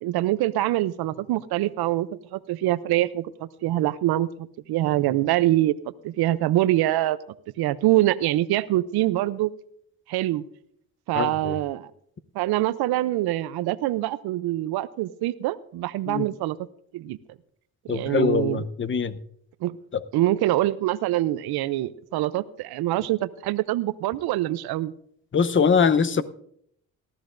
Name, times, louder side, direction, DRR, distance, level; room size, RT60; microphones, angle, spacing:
voice 1, 0.0-5.7 6.0-7.2 7.6-9.5 10.1-10.4 11.1-11.9 12.3-16.6 16.9-17.2 17.8-18.6 19.6-19.8 20.1-24.9, right 15 dB, 85° right, 15 dB, 0.6 m, -24 dB
voice 2, 11.1-11.5 16.1-16.2 17.9-19.2 25.3-26.2, left 6 dB, 30° left, 13 dB, 0.8 m, -22 dB
19.0 x 13.5 x 2.6 m, 0.69 s
cardioid pair, 75°, 37 cm